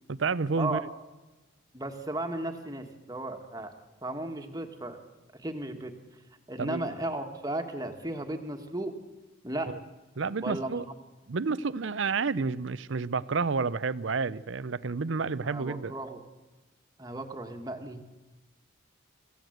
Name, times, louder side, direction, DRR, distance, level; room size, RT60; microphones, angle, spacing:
voice 1, 0.1-0.8 6.6-6.8 9.6-9.8 10.2-10.8 11.3-15.9, right 4 dB, 65° right, 0.6 m, -30 dB
voice 2, 1.7-3.7 4.0-5.0 5.3-5.9 6.5-8.9 9.4-9.7 10.4-10.8 15.4-16.2 17.0-18.0, right 1 dB, 15° right, 1.6 m, -35 dB
25.0 x 15.5 x 7.9 m
head